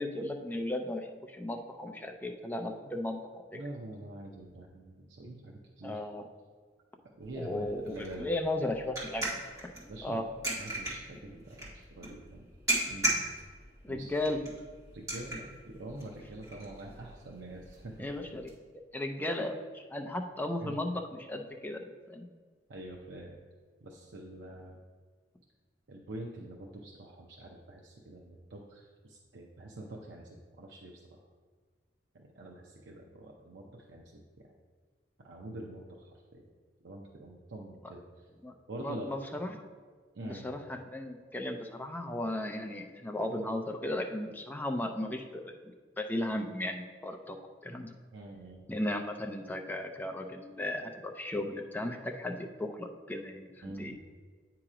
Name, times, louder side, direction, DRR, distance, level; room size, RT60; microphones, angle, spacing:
voice 1, 0.0-3.6 5.8-6.2 7.3-9.4 10.0-10.2 13.8-14.4 18.0-22.3 37.8-37.9 38.4-38.5 38.8-39.6 40.2-45.5 46.0-47.4 47.6-47.9 48.7-53.9, left 1 dB, 10° left, 4 dB, 0.5 m, -36 dB
voice 2, 3.5-6.0 7.1-8.3 9.9-10.2 10.5-12.5 12.9-13.2 13.9-14.1 14.9-18.1 20.6-20.8 22.7-23.4 23.8-24.8 25.9-30.3 30.6-31.2 32.1-34.0 34.4-34.5 35.2-36.5 36.8-38.2 38.7-39.1 40.1-40.4 48.1-48.7 53.6-54.0, right 1 dB, 75° right, -1 dB, 0.7 m, -45 dB
sound 1, 7.2-18.5, right 1 dB, 20° right, 1.6 m, -38 dB
8.8 x 2.9 x 4.9 m, 1.5 s
head